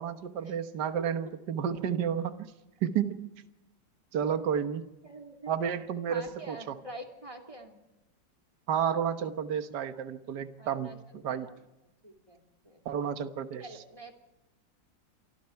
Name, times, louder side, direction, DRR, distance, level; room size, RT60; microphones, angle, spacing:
voice 1, 0.0-2.5 2.8-3.3 4.1-4.9 5.5-6.6 8.7-10.9 11.2-11.5 12.9-13.7, right 8 dB, 65° right, 9 dB, 1.8 m, -31 dB
voice 2, 5.0-5.5 6.1-7.8 10.6-11.6 12.0-12.9 13.6-14.1, right 1 dB, 15° right, 6 dB, 2.9 m, -46 dB
28.0 x 25.0 x 4.6 m, 0.96 s
omnidirectional pair, 2.0 m